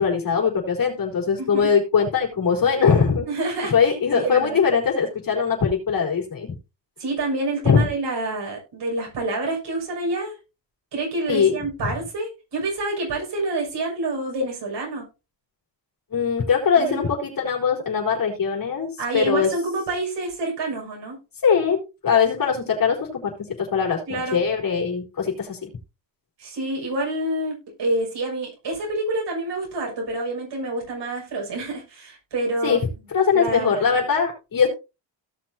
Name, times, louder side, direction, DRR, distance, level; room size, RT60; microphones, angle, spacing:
voice 1, 0.0-3.3 3.7-6.5 7.6-7.9 11.3-11.5 11.8-11.9 16.1-19.5 21.4-21.8 22.0-25.7 32.6-32.8 33.1-34.7, left 6 dB, 50° left, 0 dB, 4.4 m, -21 dB
voice 2, 1.4-1.7 3.3-4.6 7.0-10.4 10.9-15.0 16.7-17.0 19.0-21.2 24.1-24.4 26.4-32.8 33.3-34.0, right 2 dB, 70° right, -1 dB, 6.6 m, -27 dB
17.5 x 6.2 x 2.8 m, 0.28 s
wide cardioid pair, 140°, 43 cm